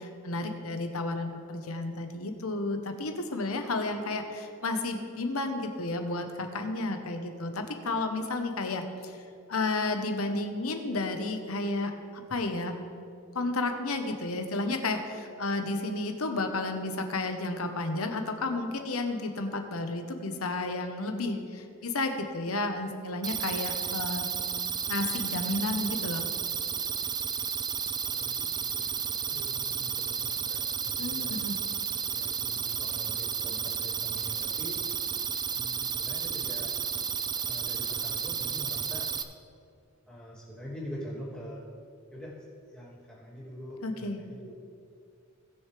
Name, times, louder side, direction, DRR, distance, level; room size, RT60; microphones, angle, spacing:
voice 1, 0.0-9.2 9.5-12.8 13.3-24.3 24.9-26.2 31.0-31.6 43.8-44.2, left 2 dB, 80° left, 6 dB, 1.1 m, -32 dB
sound 1, 23.2-39.2, right 7 dB, 20° right, 0.4 m, -32 dB
voice 2, 28.0-31.5 32.1-34.8 35.5-36.7 37.5-39.1 40.1-41.6 42.1-42.4 42.7-44.5, equal, 5° left, -8 dB, 2.7 m, -44 dB
19.0 x 6.6 x 3.4 m, 2.5 s
head